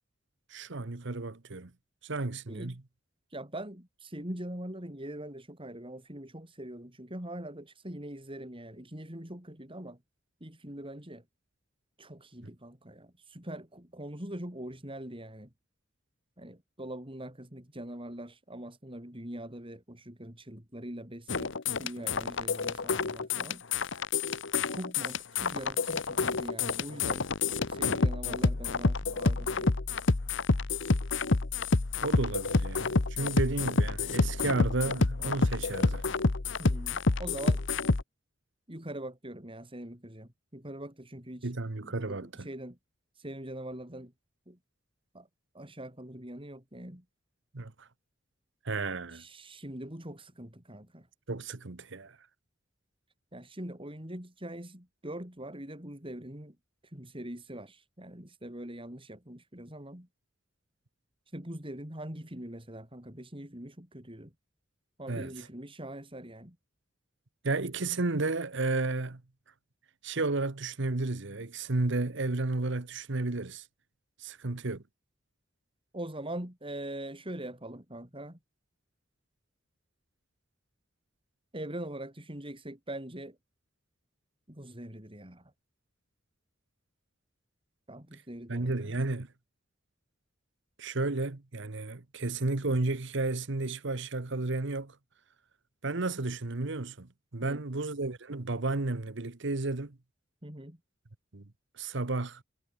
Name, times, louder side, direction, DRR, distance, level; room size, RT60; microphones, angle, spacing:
voice 1, 0.5-1.7 2.0-2.8 32.0-36.0 41.4-42.3 47.5-47.9 48.6-49.2 51.3-52.2 65.1-65.3 67.4-69.2 70.0-73.6 74.2-74.8 88.5-89.3 90.8-94.9 95.8-100.0 101.3-101.4 101.8-102.4, right 2 dB, 65° right, 1.2 m, -32 dB
voice 2, 3.3-10.0 10.4-11.2 12.0-15.5 16.4-21.5 21.8-23.6 24.7-27.3 27.7-29.8 36.6-37.6 38.7-41.5 41.8-42.8 43.1-44.1 44.5-44.6 45.1-45.3 45.5-47.0 49.1-51.1 53.3-56.6 56.8-60.1 61.3-64.3 65.0-66.6 75.9-78.4 81.5-83.4 84.5-85.5 87.9-89.0 97.4-97.6 100.4-100.8, right 1 dB, 25° right, 5.7 m, -42 dB
sound 1, 21.3-38.0, left 3 dB, 65° left, 1.1 m, -28 dB
head